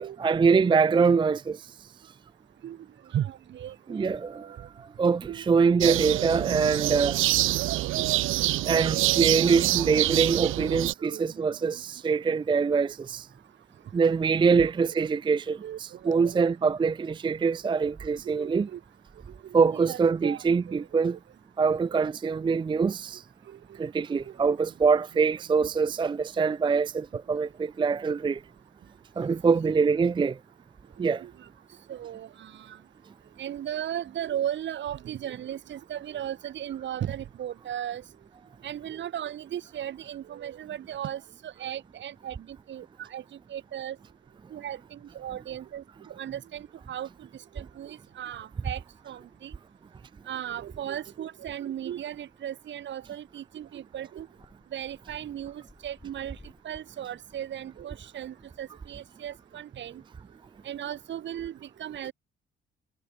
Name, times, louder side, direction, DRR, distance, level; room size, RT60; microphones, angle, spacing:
voice 1, 0.0-1.7 3.9-7.2 8.6-13.3 13.9-18.7 19.5-21.2 21.6-23.2 23.8-28.4 29.2-30.4 31.0-31.2, right 5 dB, 25° right, 0.5 m, -24 dB
voice 2, 3.1-3.8 4.4-4.7 5.3-5.4 7.2-7.3 8.0-8.1 8.3-9.2 9.5-9.7 10.1-10.5 11.0-11.4 12.3-12.4 14.4-14.5 15.0-15.1 15.6-16.5 17.6-17.7 18.4-18.8 19.3-21.2 21.6-22.0 23.5-23.6 24.1-24.5 31.0-31.5 31.9-32.8 33.4-38.0 38.6-43.2 43.5-44.0 44.5-47.3 47.5-49.6 50.3-54.3 54.7-56.4 56.6-60.0 60.6-62.1, right 10 dB, 65° right, 2.5 m, -37 dB
sound 1, 5.8-10.9, right 17 dB, 85° right, 0.9 m, -26 dB
sound 2, 53.5-53.6 54.2-59.3, left 2 dB, 10° left, 7.5 m, -56 dB
cardioid pair, 90°, 20 cm